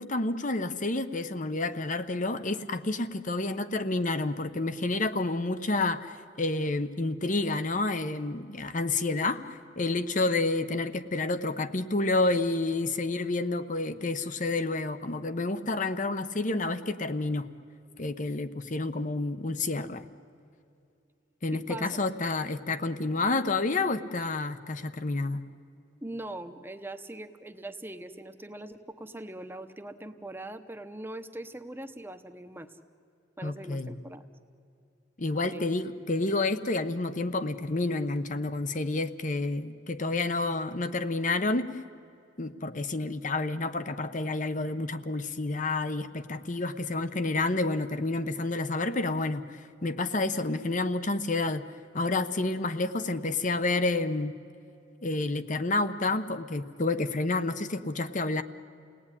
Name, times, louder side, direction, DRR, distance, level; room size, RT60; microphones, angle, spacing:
voice 1, 0.0-17.5 18.0-20.0 21.4-25.4 33.4-33.9 35.2-41.7 42.4-51.6 51.9-54.3 55.0-58.4, left 2 dB, 40° left, 11 dB, 1.0 m, -29 dB
voice 2, 21.5-22.0 26.0-32.7 33.4-34.2 35.5-35.6, right 1 dB, 10° right, 8 dB, 1.0 m, -41 dB
29.5 x 18.5 x 9.9 m, 2.6 s
head